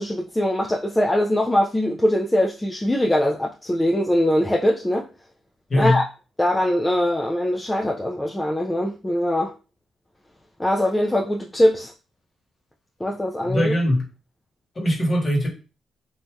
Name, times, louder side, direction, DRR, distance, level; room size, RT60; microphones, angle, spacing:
voice 1, 0.0-5.1 5.8-6.1 6.4-9.5 10.6-11.9 13.0-13.7, left 1 dB, 15° left, 0.4 m, -22 dB
voice 2, 5.7-6.0 13.4-14.0 14.7-15.5, left 1 dB, 40° left, 1.2 m, -21 dB
3.2 x 2.6 x 2.2 m
cardioid pair, 65°, 0 cm